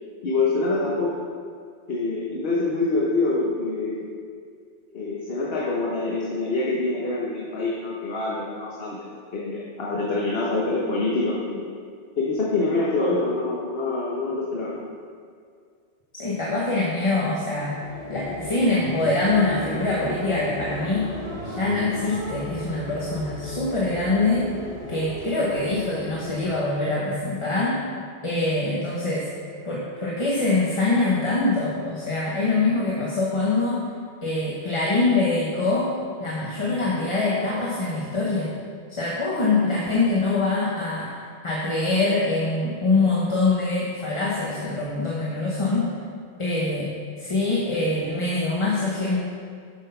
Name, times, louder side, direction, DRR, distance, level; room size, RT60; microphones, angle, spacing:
voice 1, 0.2-1.1 1.9-4.0 4.9-9.1 9.3-11.6 12.2-14.7, left 3 dB, 65° left, -4 dB, 1.3 m, -25 dB
voice 2, 16.1-21.1 21.4-24.5 24.9-27.8 28.2-29.3 29.6-33.9 34.2-35.9 36.2-38.5 38.9-45.9 46.4-46.9 47.2-49.2, left 3 dB, 30° left, -5 dB, 1.0 m, -24 dB
sound 1, 17.5-26.8, equal, 60° right, 2.0 m, -36 dB
7.5 x 6.2 x 5.5 m, 2.1 s
omnidirectional pair, 1.1 m